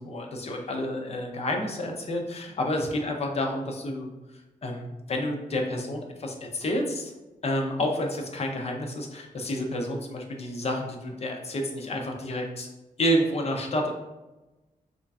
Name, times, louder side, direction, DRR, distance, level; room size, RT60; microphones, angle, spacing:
voice 1, 0.0-4.1 4.6-7.1 7.4-12.7 13.0-13.9, left 1 dB, 45° left, 2 dB, 0.5 m, -29 dB
3.7 x 3.1 x 2.3 m, 1.1 s
wide cardioid pair, 155°, 15 cm